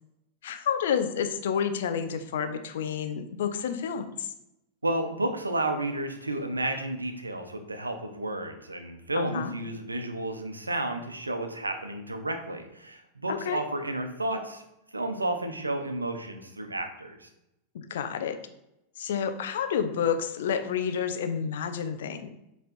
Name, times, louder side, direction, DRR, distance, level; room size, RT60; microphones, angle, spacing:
voice 1, 0.4-4.3 9.2-9.5 13.3-13.6 17.7-18.4 19.0-22.3, left 7 dB, 60° left, 8 dB, 0.7 m, -29 dB
voice 2, 4.8-14.6 14.9-17.3, right 1 dB, 80° right, 6 dB, 0.9 m, -32 dB
7.6 x 3.3 x 4.3 m, 0.85 s
figure-of-eight pair, 90°, 0 cm